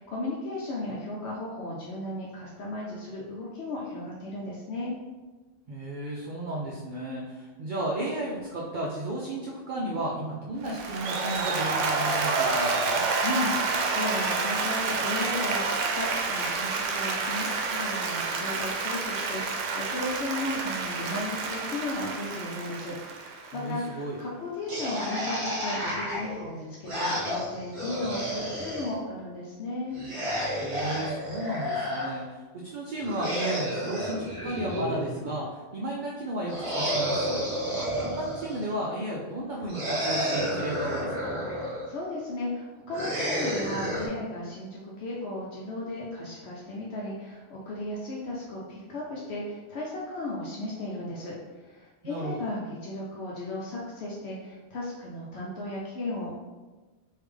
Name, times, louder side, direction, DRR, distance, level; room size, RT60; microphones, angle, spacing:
voice 1, 0.0-4.9 13.2-30.0 41.5-56.3, left 2 dB, 65° left, -5 dB, 0.8 m, -35 dB
voice 2, 5.7-13.0 23.5-24.2 30.6-37.4 37.7-41.4 52.0-52.4, right 1 dB, 55° right, -3 dB, 0.5 m, -34 dB
Applause, 10.7-23.8, right 4 dB, 80° right, 0.9 m, -29 dB
sound 1, 24.7-28.9 29.9-32.1 33.0-35.3 36.5-38.7 39.7-41.9 42.9-44.1, equal, 30° right, 0.9 m, -31 dB
3.4 x 2.7 x 3.4 m, 1.3 s
omnidirectional pair, 1.3 m